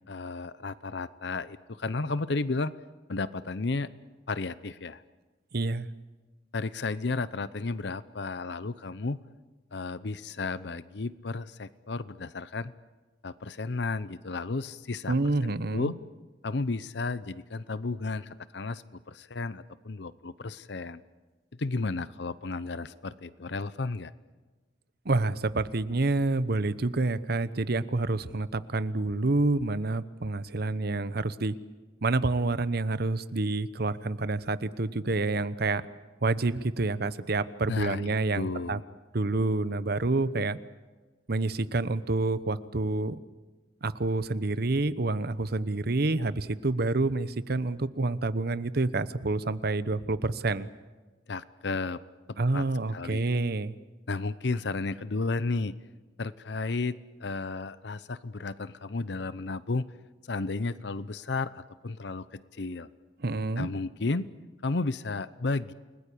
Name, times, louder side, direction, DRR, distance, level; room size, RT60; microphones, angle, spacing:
voice 1, 0.1-2.7 3.1-3.9 4.3-5.0 6.5-9.2 9.7-12.7 13.2-15.3 15.7-15.9 16.4-21.0 21.6-24.1 37.7-38.8 51.3-52.0 52.5-52.6 52.9-53.3 54.1-55.8 56.2-59.9 60.3-62.9 63.6-64.3 64.6-65.7, left 3 dB, 65° left, 16 dB, 0.8 m, -33 dB
voice 2, 5.5-5.9 15.1-15.9 25.0-31.6 32.0-35.8 36.2-38.8 39.1-40.6 41.3-43.2 43.8-50.7 52.4-53.8 63.2-63.7, right 2 dB, 60° right, 15 dB, 0.9 m, -28 dB
29.5 x 20.0 x 8.5 m, 1.3 s
head